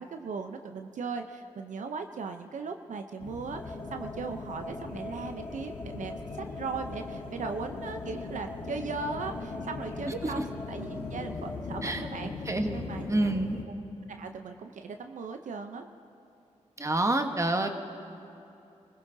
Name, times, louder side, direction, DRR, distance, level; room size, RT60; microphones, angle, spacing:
voice 1, 0.0-12.3 12.7-13.3 13.6-13.7 14.1-15.9, right 4 dB, 75° right, 6 dB, 0.7 m, -38 dB
sound 1, 3.2-13.6, left 4 dB, 85° left, 1.1 m, -40 dB
sound 2, 3.5-13.6, left 1 dB, 20° left, 1.5 m, -43 dB
voice 2, 12.5-12.8 13.1-13.6 16.8-17.7, right 2 dB, 25° right, 5 dB, 1.2 m, -27 dB
25.0 x 16.0 x 2.7 m, 2.8 s
cardioid pair, 50°, 13 cm